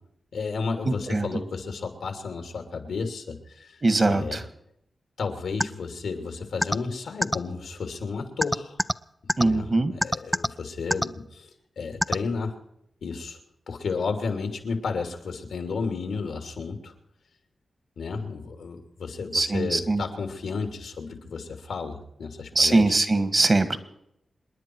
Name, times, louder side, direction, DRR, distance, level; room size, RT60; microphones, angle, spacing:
voice 1, 0.3-3.8 4.1-4.4 5.2-8.8 9.4-11.5 11.8-12.5 13.0-13.4 13.7-16.9 18.0-22.9, left 4 dB, 90° left, 5 dB, 2.8 m, -32 dB
voice 2, 0.8-1.3 3.8-4.4 9.4-9.9 19.3-20.0 22.6-23.8, right 2 dB, 40° right, 11 dB, 1.7 m, -22 dB
sound 1, 5.6-5.7 6.6-6.8 7.2-7.4 8.4-8.9 9.3-9.4 10.0-10.5 10.9-11.1 12.0-12.2, equal, ahead, 0.5 m, -22 dB
27.5 x 10.5 x 4.7 m, 0.78 s
cardioid pair, 70°, 0 cm